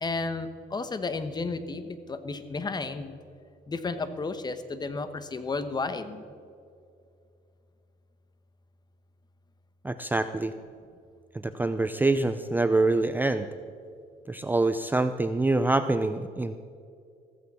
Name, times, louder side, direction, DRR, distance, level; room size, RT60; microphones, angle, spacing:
voice 1, 0.0-3.2 3.7-6.2, left 3 dB, 25° left, 11 dB, 1.1 m, -32 dB
voice 2, 9.8-10.5 11.4-13.5 14.3-16.6, right 2 dB, 10° right, 10 dB, 0.5 m, -25 dB
15.5 x 14.5 x 4.3 m, 2.4 s
cardioid pair, 110°, 17 cm